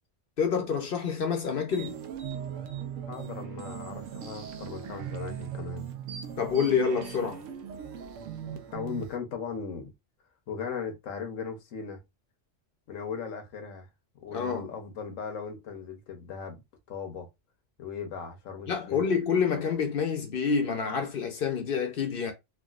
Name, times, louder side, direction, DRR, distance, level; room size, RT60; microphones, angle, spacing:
voice 1, 0.4-2.0 6.4-7.4 14.3-14.7 18.7-22.3, left 6 dB, 55° left, 0.8 m, -27 dB
sound 1, 1.7-9.2, right 8 dB, 85° right, 1.0 m, -39 dB
voice 2, 3.1-5.9 8.7-9.9 10.5-12.0 12.9-13.9 14.2-16.6 16.9-17.3 17.8-19.0, left 6 dB, 85° left, 1.3 m, -38 dB
3.5 x 2.2 x 2.4 m
omnidirectional pair, 1.3 m